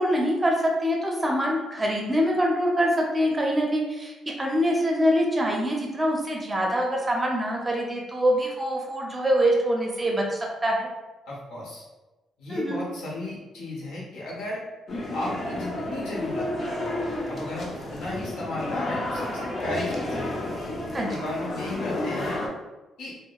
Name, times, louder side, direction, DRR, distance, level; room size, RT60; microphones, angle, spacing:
voice 1, 0.0-10.9 12.5-12.8 20.9-21.1, equal, 20° right, -1 dB, 0.5 m, -24 dB
voice 2, 11.3-11.8 12.4-14.6 15.1-16.5 17.3-20.3 21.1-22.4 23.0-23.1, left 1 dB, 85° left, -4 dB, 0.8 m, -34 dB
sound 1, 14.9-22.5, left 1 dB, 45° left, 0.5 m, -31 dB
2.7 x 2.0 x 2.3 m, 1.1 s
cardioid pair, 90°, 0 cm